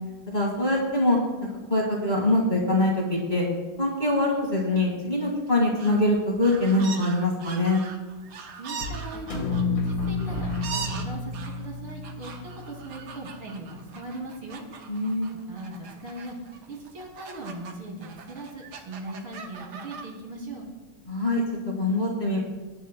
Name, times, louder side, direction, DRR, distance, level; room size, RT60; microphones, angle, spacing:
voice 1, 0.3-1.2 1.7-3.5 3.8-7.8 14.9-15.3 21.1-22.4, left 1 dB, 20° left, -3 dB, 2.0 m, -24 dB
sound 1, 5.5-6.1 6.4-17.7 18.0-20.0, right 6 dB, 60° right, 1.3 m, -41 dB
sound 2, 6.1-6.6 8.8-11.4, right 1 dB, 75° left, 3.5 m, -39 dB
voice 2, 8.6-9.4 9.7-14.6 15.3-16.4 16.7-20.6, right 2 dB, 75° right, -2 dB, 3.4 m, -39 dB
sound 3, 9.3-13.5, left 3 dB, 50° left, 1.3 m, -31 dB
20.0 x 10.0 x 2.2 m, 1.2 s
omnidirectional pair, 2.4 m